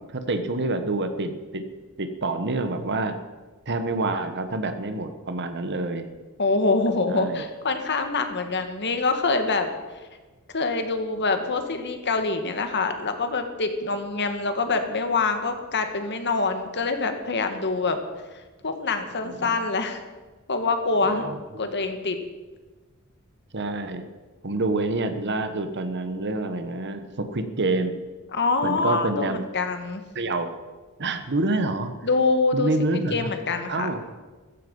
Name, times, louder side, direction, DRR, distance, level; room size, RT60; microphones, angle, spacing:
voice 1, 0.0-1.6 2.0-3.2 3.7-6.1 7.1-7.4 19.2-19.5 21.0-21.4 21.6-21.7 23.5-24.1 24.4-28.0 28.6-29.4 30.1-30.5 31.0-31.9 32.5-33.3 33.7-34.0, right 2 dB, 55° right, 9 dB, 1.3 m, -27 dB
voice 2, 6.4-9.7 10.5-18.0 18.3-20.0 20.5-21.3 21.6-22.2 28.3-30.0 32.0-32.7 33.1-33.9, left 3 dB, 50° left, 7 dB, 1.8 m, -25 dB
15.5 x 14.0 x 5.5 m, 1.3 s
head